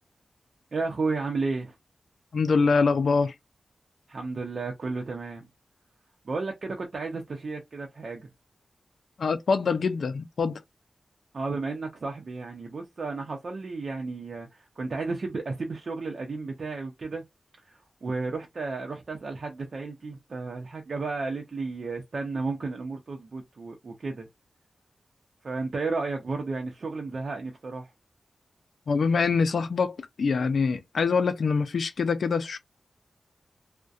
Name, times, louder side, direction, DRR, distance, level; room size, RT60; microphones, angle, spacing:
voice 1, 0.7-1.8 4.1-5.5 6.2-8.3 11.3-17.2 17.6-24.3 25.4-27.9, right 3 dB, 60° right, 0.6 m, -33 dB
voice 2, 2.3-3.3 9.2-10.6 28.9-32.6, left 5 dB, 80° left, 0.4 m, -24 dB
2.6 x 2.1 x 2.3 m
wide cardioid pair, 80°, 0 cm